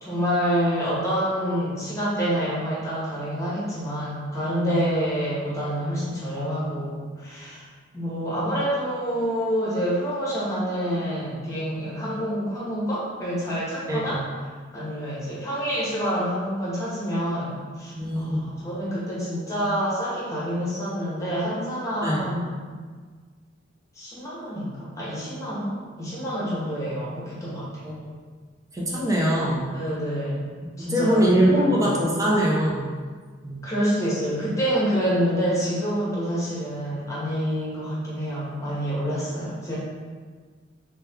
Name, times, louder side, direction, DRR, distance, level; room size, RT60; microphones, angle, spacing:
voice 1, 0.0-7.7 7.9-14.2 14.7-22.7 23.9-27.7 29.7-30.4 30.8-31.3 31.6-31.9 33.6-39.7, equal, 15° left, -8 dB, 1.0 m, -27 dB
voice 2, 13.9-14.2 18.0-18.5 22.0-22.3 27.8-28.1 28.7-29.7 30.8-32.9 33.4-33.6, right 1 dB, 15° right, -4 dB, 0.6 m, -23 dB
3.3 x 3.1 x 3.4 m, 1.5 s
head